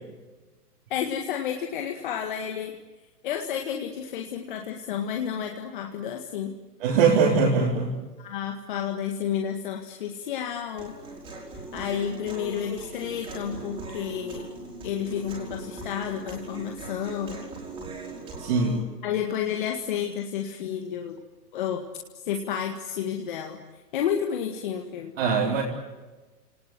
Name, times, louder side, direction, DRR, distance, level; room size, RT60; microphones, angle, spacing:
voice 1, 0.9-2.8 3.2-6.5 8.2-11.0 11.7-14.5 14.8-17.5 19.0-21.2 21.5-21.8 22.2-23.6 23.9-25.2, left 8 dB, 30° left, 3 dB, 1.9 m, -31 dB
voice 2, 6.8-7.9 18.4-18.8 25.2-25.6, right 5 dB, 35° right, -3 dB, 4.5 m, -21 dB
Human voice, 10.8-18.8, right 2 dB, 10° right, 5.0 m, -40 dB
29.0 x 19.0 x 9.8 m, 1.2 s
hypercardioid pair, 165°, 47 cm